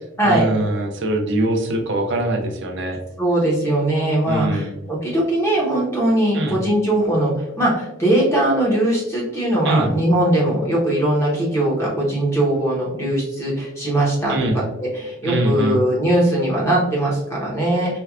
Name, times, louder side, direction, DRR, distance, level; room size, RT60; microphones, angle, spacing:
voice 1, 0.2-3.0 4.3-4.7 6.3-6.6 9.6-9.9 14.3-14.6 15.2-15.8, right 1 dB, 55° right, 5 dB, 0.5 m, -22 dB
voice 2, 3.2-14.6 14.9-18.0, right 1 dB, 15° left, -5 dB, 0.8 m, -20 dB
4.3 x 2.2 x 2.3 m, 0.90 s
head